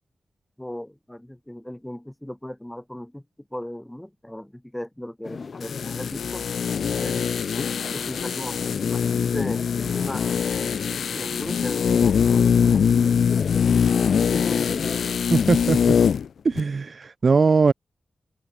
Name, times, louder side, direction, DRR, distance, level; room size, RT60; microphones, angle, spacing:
voice 1, 0.6-3.2 3.5-6.4 7.0-7.3 7.9-8.6 8.9-10.3 11.0-13.5, left 1 dB, 5° left, 6.7 m, -37 dB
sound 1, 5.2-15.2, left 5 dB, 45° left, 5.5 m, -35 dB
sound 2, 5.6-16.3 16.6-16.7, left 7 dB, 85° left, 0.5 m, -22 dB
voice 2, 15.3-16.0 16.4-17.7, right 4 dB, 40° right, 0.3 m, -20 dB
open air
wide cardioid pair, 155°, 0 cm